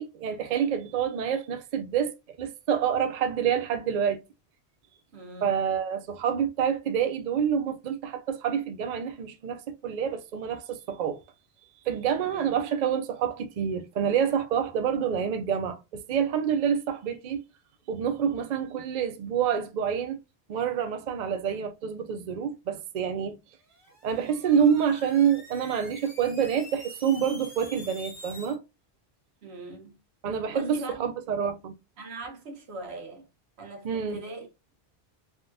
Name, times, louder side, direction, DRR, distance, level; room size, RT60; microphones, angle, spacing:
voice 1, 0.0-2.1 2.4-4.2 5.4-11.2 11.9-17.4 17.9-20.2 20.5-23.4 24.0-28.6 30.2-31.7 33.8-34.2, right 8 dB, 55° right, 0.5 m, -27 dB
voice 2, 5.1-5.6 12.2-12.5 29.4-30.0 30.5-30.9 32.0-33.3 33.6-34.5, right 2 dB, 90° right, 1.1 m, -40 dB
sound 1, 23.7-28.5, left 1 dB, 35° left, 1.5 m, -47 dB
3.5 x 2.3 x 2.6 m
omnidirectional pair, 1.1 m